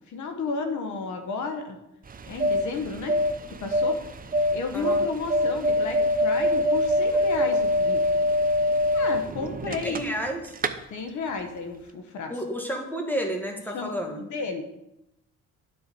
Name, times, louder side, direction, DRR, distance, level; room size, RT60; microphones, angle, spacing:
voice 1, 0.1-1.8 2.3-3.2 3.6-4.0 4.5-8.0 8.9-10.0 10.9-12.3 13.7-14.6, left 4 dB, 70° left, 5 dB, 1.3 m, -32 dB
sound 1, 2.1-10.3 10.6-10.7, left 1 dB, 30° right, 0.7 m, -24 dB
voice 2, 4.7-5.0 9.7-10.5 12.3-14.2, equal, 5° left, 2 dB, 1.8 m, -31 dB
9.7 x 4.6 x 6.9 m, 0.88 s
cardioid pair, 90°, 30 cm